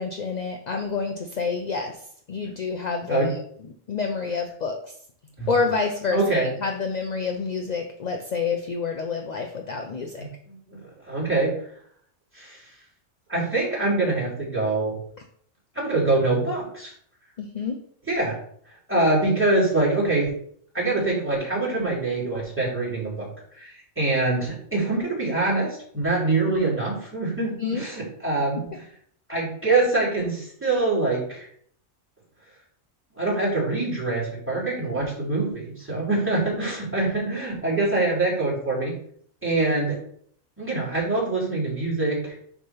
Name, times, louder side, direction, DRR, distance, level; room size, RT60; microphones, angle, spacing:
voice 1, 0.0-2.0 2.3-3.4 3.9-4.9 5.5-10.2 17.4-17.8 27.4-27.8, left 5 dB, 50° left, 4 dB, 0.5 m, -28 dB
voice 2, 6.1-6.5 10.2-10.5 10.8-11.5 12.3-12.6 13.3-15.0 15.7-16.9 18.1-18.4 18.9-20.3 20.7-23.3 23.5-28.8 29.3-31.5 33.2-38.9 39.4-40.0 40.6-42.3, right 2 dB, 10° right, -5 dB, 3.0 m, -24 dB
6.6 x 3.7 x 5.6 m, 0.62 s
omnidirectional pair, 1.4 m